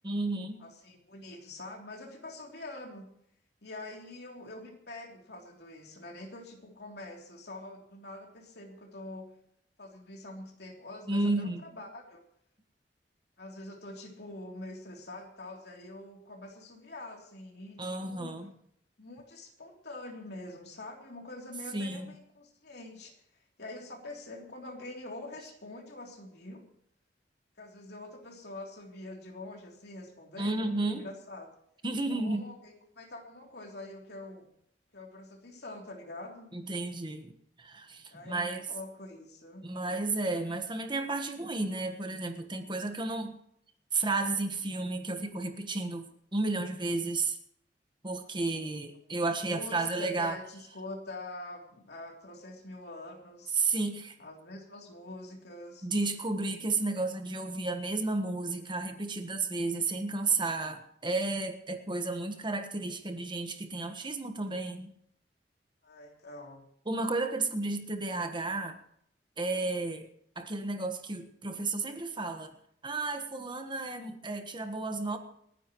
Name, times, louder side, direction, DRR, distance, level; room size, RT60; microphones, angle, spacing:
voice 1, 0.0-0.6 11.1-11.6 17.8-18.5 21.7-22.1 30.4-31.0 31.8-32.5 36.5-38.7 39.6-43.3 43.9-47.4 48.0-50.4 53.6-54.2 55.8-64.9 66.8-68.8 69.4-70.1 70.3-72.5 72.8-75.2, right 3 dB, 25° right, 7 dB, 1.4 m, -32 dB
voice 2, 0.6-3.1 3.6-9.3 9.8-12.2 13.4-18.4 19.0-23.1 23.6-26.7 27.6-31.5 32.1-34.5 34.9-36.5 38.1-39.7 48.5-48.7 49.4-53.6 54.2-55.9 65.8-66.6, left 2 dB, 65° left, 1 dB, 3.2 m, -45 dB
29.0 x 10.0 x 3.1 m, 0.71 s
head